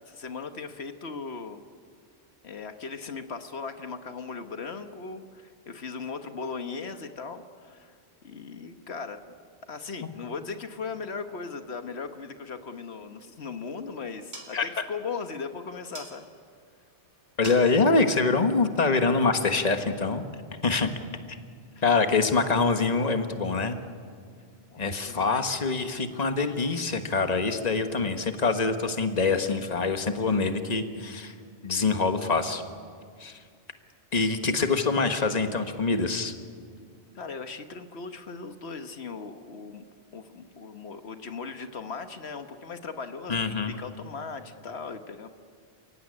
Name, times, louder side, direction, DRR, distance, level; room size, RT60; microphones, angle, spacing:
voice 1, 0.1-1.6 2.4-8.0 8.2-9.2 9.7-16.3 21.7-21.8 25.0-25.5 37.1-39.8 40.1-43.4 43.7-45.3, left 5 dB, 80° left, 8 dB, 1.4 m, -38 dB
sound 1, 13.1-19.6, right 1 dB, 75° right, 3.9 m, -49 dB
voice 2, 17.4-20.2 20.6-20.9 21.8-23.8 24.8-31.3 31.6-32.6 33.2-33.4 34.1-36.3 43.3-43.8, left 4 dB, 40° left, 7 dB, 1.5 m, -25 dB
29.0 x 16.5 x 9.8 m, 2.1 s
omnidirectional pair, 1.1 m